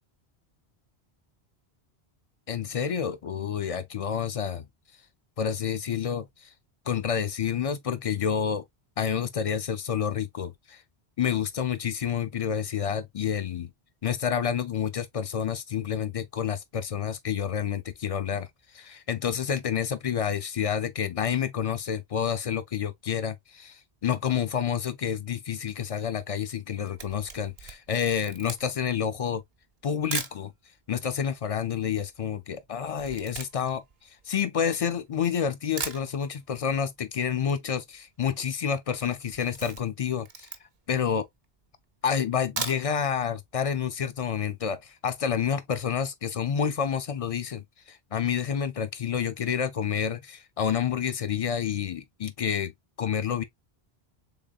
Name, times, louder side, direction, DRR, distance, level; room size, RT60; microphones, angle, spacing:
voice 1, 2.5-4.6 5.4-6.5 6.9-8.6 9.0-10.8 11.2-13.7 14.0-18.5 18.7-29.4 29.8-30.5 30.9-40.5 40.9-41.3 42.0-52.7 53.0-53.4, left 8 dB, 55° left, 0.4 m, -29 dB
Camera, 26.6-30.4 31.1-31.2 31.4-35.1 35.5-35.6 35.8-36.6 36.9-37.0 37.3-37.4 37.5-38.0 38.3-38.5 38.9-40.9 41.4-41.5 42.3-43.1 43.5-43.6 43.9-44.0, right 4 dB, 40° right, 0.7 m, -38 dB
3.9 x 3.4 x 2.3 m
omnidirectional pair, 1.1 m